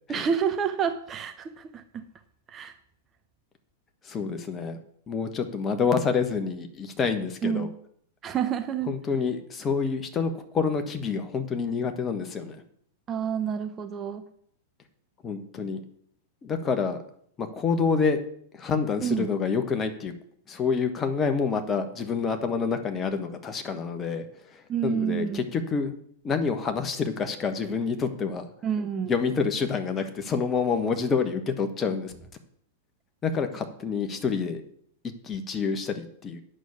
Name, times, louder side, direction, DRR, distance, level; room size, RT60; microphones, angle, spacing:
voice 1, 0.1-2.1 2.5-2.7 7.4-7.7 8.2-9.0 13.1-14.2 19.0-19.3 24.7-25.5 28.6-29.1, right 7 dB, 25° right, 8 dB, 0.8 m, -28 dB
voice 2, 4.0-4.8 5.1-7.7 8.9-12.6 15.2-15.8 16.4-17.0 17.4-18.2 18.5-20.1 20.5-24.2 24.5-25.9 26.2-28.5 29.1-32.2 33.2-34.6 35.2-36.4, left 5 dB, 20° left, 7 dB, 1.3 m, -27 dB
8.9 x 6.4 x 7.1 m, 0.66 s
figure-of-eight pair, 95°, 0 cm